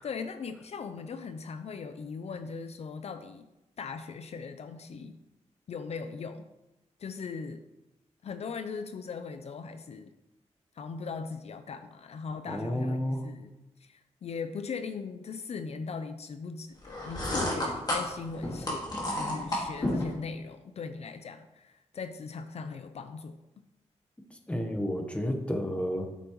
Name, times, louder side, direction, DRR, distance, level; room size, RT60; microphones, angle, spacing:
voice 1, 0.0-3.5 3.8-5.1 5.7-6.5 7.0-7.6 8.2-10.1 10.7-13.5 13.8-23.4, left 5 dB, 60° left, 9 dB, 0.5 m, -39 dB
voice 2, 12.5-13.2 24.5-26.1, equal, 10° left, 4 dB, 1.0 m, -31 dB
sound 1, 16.8-20.1, left 1 dB, 35° left, 2.0 m, -31 dB
8.9 x 8.1 x 3.0 m, 0.98 s
wide cardioid pair, 135°, 12 cm